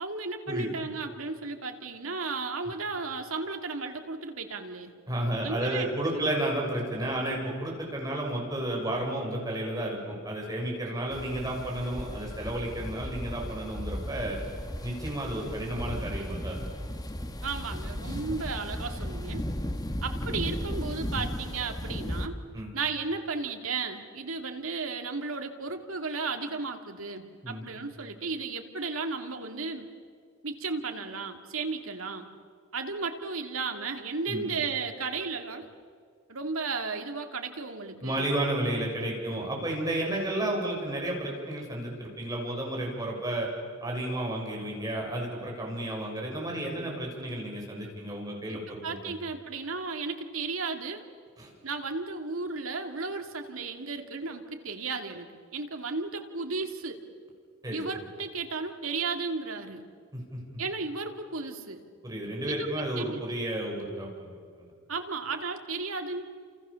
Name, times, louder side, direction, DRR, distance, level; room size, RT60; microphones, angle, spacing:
voice 1, 0.0-4.9 5.4-6.3 17.4-19.4 20.0-22.4 22.7-29.9 30.4-32.3 32.7-35.7 36.3-38.3 48.5-51.0 51.6-57.0 57.7-59.8 60.6-61.8 62.5-63.2 64.9-66.2, right 4 dB, 85° right, 4 dB, 2.5 m, -34 dB
voice 2, 5.1-14.4 14.8-16.6 22.5-22.7 27.4-27.6 34.3-34.5 38.0-43.5 43.8-49.1 51.4-51.5 57.6-57.8 60.1-60.4 62.0-64.7, right 1 dB, 20° right, -2 dB, 6.9 m, -32 dB
sound 1, 11.1-22.3, equal, 20° left, 1.5 m, -35 dB
29.5 x 28.5 x 7.1 m, 2.1 s
head